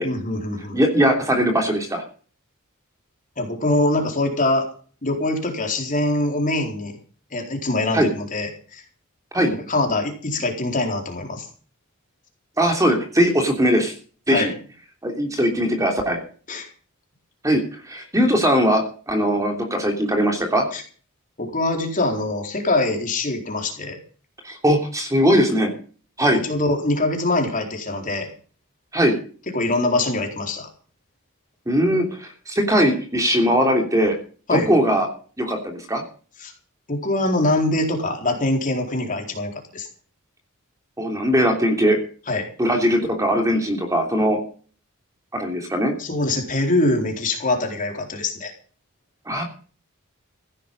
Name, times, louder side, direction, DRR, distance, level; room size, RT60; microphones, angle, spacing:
voice 1, 0.0-0.8 3.4-4.7 5.0-7.0 7.3-8.8 9.4-11.5 14.3-14.5 16.5-16.7 20.7-20.8 21.4-24.0 26.2-28.3 29.5-30.7 34.5-34.7 36.4-36.5 36.9-39.9 42.3-42.5 46.0-48.5, left 2 dB, 40° left, 2 dB, 4.2 m, -23 dB
voice 2, 0.7-2.0 7.9-8.1 9.3-9.5 12.6-13.9 14.3-14.5 15.0-16.2 17.4-20.6 24.4-25.7 26.2-26.4 28.9-29.2 31.7-34.2 34.5-35.1 35.4-36.0 41.0-42.0 42.6-44.4 45.3-45.9 49.3-49.4, equal, 15° right, 3 dB, 3.1 m, -20 dB
16.0 x 11.5 x 5.5 m, 0.42 s
head